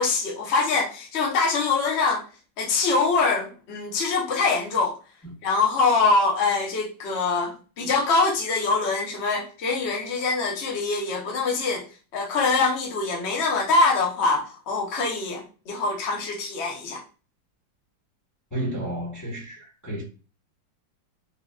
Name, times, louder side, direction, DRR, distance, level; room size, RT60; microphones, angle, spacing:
voice 1, 0.0-2.2 2.6-5.0 5.4-11.8 12.1-17.0, left 3 dB, 60° left, 0.7 m, -24 dB
voice 2, 18.5-20.0, right 1 dB, 20° left, 0.5 m, -31 dB
3.8 x 2.2 x 2.2 m
omnidirectional pair, 2.1 m